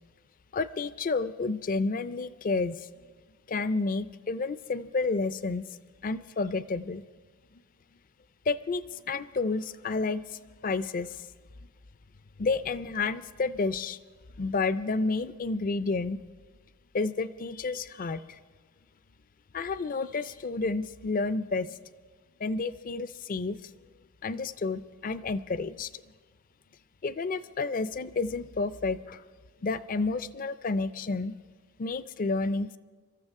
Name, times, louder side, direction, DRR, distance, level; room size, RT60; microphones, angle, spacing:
voice 1, 0.5-2.9 3.5-5.7 6.0-7.0 8.5-11.3 12.4-14.0 14.4-16.2 16.9-18.4 19.5-21.8 22.4-23.7 24.2-26.0 27.0-29.2 29.6-31.4 31.8-32.8, left 3 dB, 40° left, 15 dB, 0.4 m, -30 dB
25.5 x 13.5 x 3.6 m, 1.5 s
head